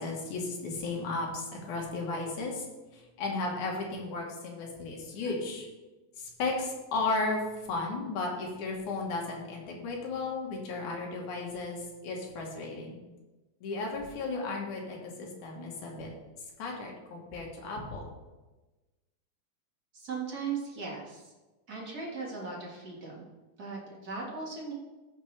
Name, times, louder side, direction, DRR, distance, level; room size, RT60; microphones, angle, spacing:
voice 1, 0.0-2.7 2.9-5.7 6.2-13.0 13.6-16.1 16.6-18.1, left 3 dB, 70° left, 0 dB, 2.9 m, -34 dB
voice 2, 19.9-21.3 21.7-23.3 23.6-24.7, right 4 dB, 35° right, -3 dB, 1.8 m, -38 dB
15.0 x 5.8 x 3.3 m, 1.2 s
omnidirectional pair, 3.8 m